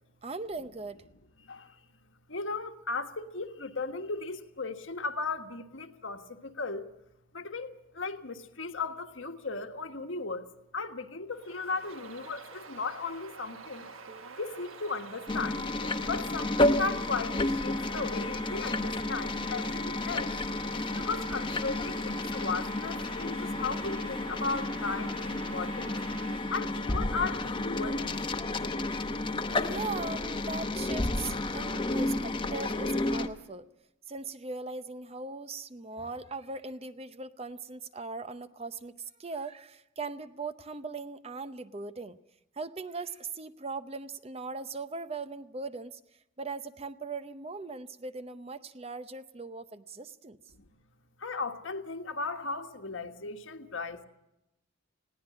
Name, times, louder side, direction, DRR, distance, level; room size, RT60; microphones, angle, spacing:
voice 1, 0.2-1.0 29.5-33.7 34.1-42.2 42.6-46.0 46.4-50.4, right 3 dB, 30° right, 0.6 m, -39 dB
voice 2, 1.4-1.8 2.3-6.9 7.3-13.9 14.4-15.6 16.0-20.4 21.0-26.0 26.5-28.1 50.5-50.7 51.2-54.0, left 4 dB, 70° left, 1.5 m, -36 dB
Bird vocalization bird call bird song, 11.3-26.6, right 4 dB, 90° right, 1.5 m, -47 dB
sound 1, 15.3-33.3, left 2 dB, 25° left, 0.9 m, -31 dB
20.0 x 17.0 x 8.4 m
head